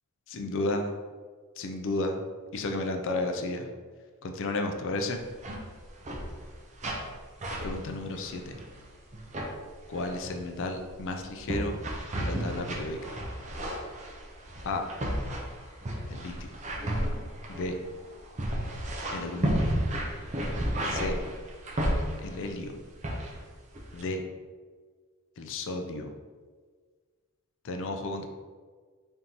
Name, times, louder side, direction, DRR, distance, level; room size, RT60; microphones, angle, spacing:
voice 1, 0.3-0.9 1.6-2.2 2.5-3.7 4.2-5.2 7.6-8.6 9.9-11.8 12.2-13.2 14.6-14.8 16.1-16.3 17.5-17.8 19.1-19.7 20.8-21.2 22.2-22.7 23.9-24.2 25.4-26.1 27.6-28.3, left 2 dB, 60° left, 4 dB, 0.4 m, -32 dB
sound 1, 5.2-5.6 5.8-6.5 6.8-7.1 7.4-8.8 9.1-9.5 9.9-10.3 10.9-22.5 23.0-23.4 23.7-24.0, equal, 30° right, 0.6 m, -32 dB
3.9 x 3.6 x 2.9 m, 1.5 s
head